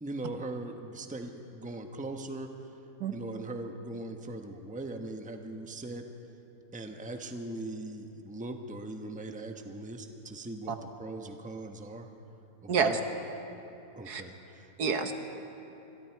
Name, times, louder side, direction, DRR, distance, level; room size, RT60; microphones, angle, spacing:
voice 1, 0.0-2.5 3.1-6.0 6.7-12.1 12.6-13.0 14.0-14.7, right 2 dB, 5° right, 5 dB, 0.9 m, -40 dB
voice 2, 12.7-13.0 14.1-14.2 14.8-15.1, right 6 dB, 85° right, 7 dB, 1.8 m, -28 dB
26.5 x 22.0 x 4.7 m, 3.0 s
omnidirectional pair, 1.6 m